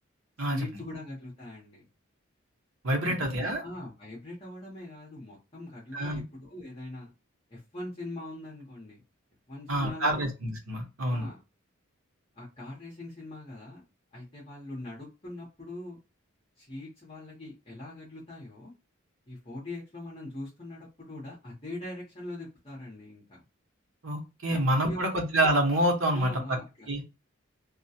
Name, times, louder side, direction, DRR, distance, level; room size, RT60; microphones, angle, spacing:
voice 1, 0.4-1.8 3.1-3.3 3.6-7.1 7.5-9.0 9.5-10.3 11.1-11.4 12.4-13.8 14.1-16.0 16.6-18.7 19.3-23.4 24.5-25.0 26.1-27.1, left 1 dB, 30° left, -5 dB, 0.8 m, -42 dB
voice 2, 2.8-3.6 5.9-6.2 9.7-11.3 24.0-26.6 26.9-27.1, right 1 dB, 85° right, 2 dB, 0.9 m, -27 dB
2.3 x 2.2 x 2.7 m, 0.27 s
head